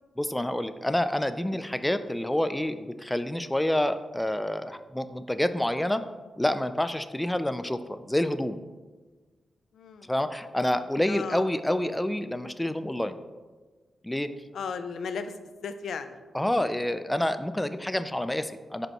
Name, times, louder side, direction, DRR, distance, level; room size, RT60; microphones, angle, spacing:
voice 1, 0.2-6.0 6.4-8.6 10.1-13.2 14.0-14.3 16.3-18.9, left 1 dB, 10° left, 11 dB, 0.3 m, -28 dB
voice 2, 9.7-10.1 11.1-11.5 14.5-15.4 15.6-16.2, left 5 dB, 80° left, 9 dB, 0.5 m, -35 dB
10.5 x 5.3 x 3.0 m, 1.4 s
cardioid pair, 90°, 0 cm